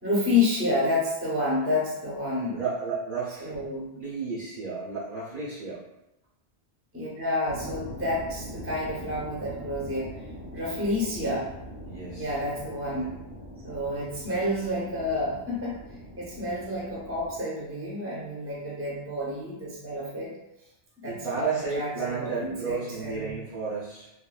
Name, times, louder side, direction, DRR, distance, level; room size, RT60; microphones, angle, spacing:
voice 1, 0.0-2.6 3.4-3.9 6.9-10.1 10.5-11.5 12.1-13.1 13.6-15.8 16.2-20.3 21.0-23.3, left 2 dB, 15° right, -6 dB, 0.7 m, -29 dB
voice 2, 2.5-3.5 3.9-5.8 11.9-12.3 21.0-24.1, right 4 dB, 55° right, -8 dB, 0.8 m, -32 dB
sound 1, 7.5-17.4, equal, 40° left, 0.9 m, -42 dB
3.1 x 2.5 x 2.3 m, 0.91 s
omnidirectional pair, 1.1 m